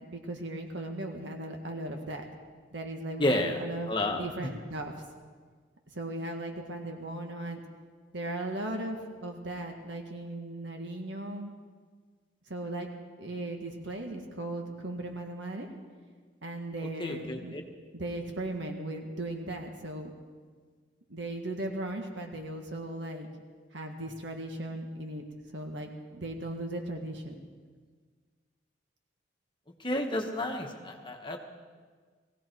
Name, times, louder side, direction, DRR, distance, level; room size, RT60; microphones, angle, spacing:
voice 1, 0.1-2.3 2.7-5.0 5.9-7.6 8.1-11.5 12.5-12.9 13.2-15.7 16.4-17.5 17.9-20.1 21.1-23.3 23.7-25.2 25.5-27.4, right 1 dB, 70° right, 3 dB, 1.7 m, -37 dB
voice 2, 3.2-3.6 3.9-4.2 17.0-17.6 29.8-31.4, left 1 dB, 25° left, 3 dB, 1.3 m, -30 dB
19.5 x 16.0 x 4.5 m, 1.6 s
head